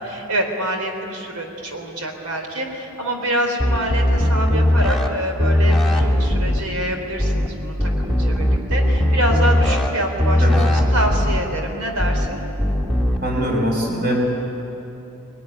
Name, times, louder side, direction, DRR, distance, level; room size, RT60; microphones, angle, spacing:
voice 1, 0.0-12.4, right 1 dB, 85° right, 3 dB, 3.8 m, -26 dB
sound 1, 3.6-5.1 5.4-6.6 7.2-7.5 7.8-9.9 10.2-11.4 12.0-12.3 12.6-13.2, left 1 dB, ahead, 1.8 m, -18 dB
voice 2, 13.2-14.3, equal, 45° right, 0 dB, 4.5 m, -22 dB
21.0 x 20.0 x 10.0 m, 2.9 s
head